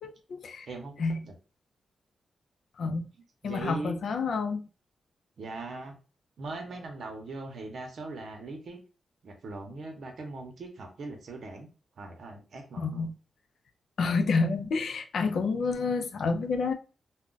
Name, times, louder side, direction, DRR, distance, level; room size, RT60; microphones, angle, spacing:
voice 1, 0.0-0.7 1.0-1.3 2.8-3.1 3.4-4.7 12.8-13.1 14.0-16.7, left 4 dB, 65° left, 0.4 m, -29 dB
voice 2, 3.4-4.0 5.4-5.9 6.4-8.8 9.2-11.7 12.0-13.1, right 3 dB, 60° right, 0.8 m, -40 dB
2.3 x 2.2 x 3.8 m
wide cardioid pair, 170°, 0 cm